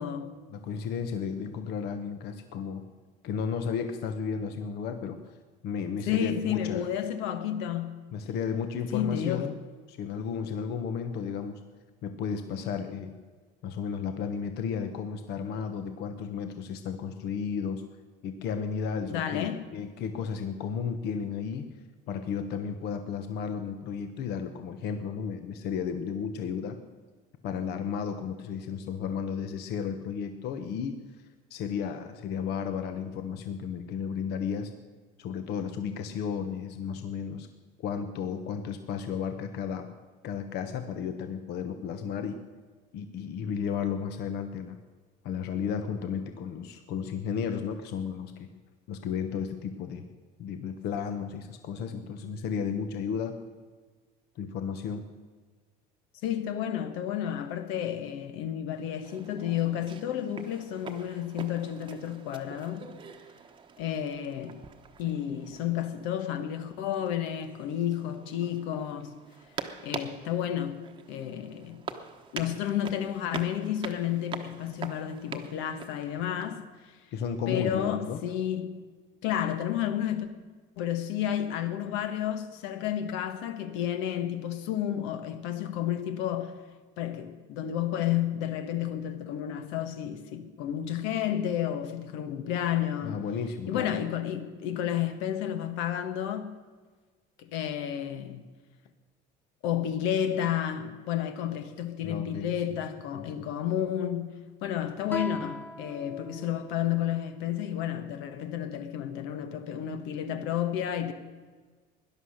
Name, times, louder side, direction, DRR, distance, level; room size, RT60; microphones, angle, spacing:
voice 1, 0.0-0.3 6.0-8.0 8.9-9.5 19.1-19.7 56.2-62.9 63.8-64.6 65.0-69.1 69.8-70.8 71.1-71.8 72.3-76.9 77.5-78.8 79.2-80.3 80.8-86.5 87.0-93.2 93.7-96.6 97.4-98.4 99.6-104.3 104.6-111.1, left 10 dB, 80° left, 1.5 m, -31 dB
voice 2, 0.5-2.8 3.2-5.2 5.6-6.9 8.1-9.6 9.9-11.6 12.0-13.1 13.6-17.8 18.2-21.7 22.1-26.8 27.4-31.0 31.5-34.7 35.2-37.5 37.8-39.9 40.2-42.4 42.9-44.8 45.2-48.5 48.9-50.1 50.4-53.4 54.4-55.1 77.1-78.2 93.0-93.9 102.0-102.5 103.2-103.5, left 6 dB, 60° left, 1.1 m, -33 dB
sound 1, 59.0-76.5, right 6 dB, 25° right, 1.0 m, -44 dB
Guitar, 105.1-108.3, left 1 dB, 10° left, 0.6 m, -41 dB
17.5 x 11.5 x 6.5 m
cardioid pair, 150°, 19 cm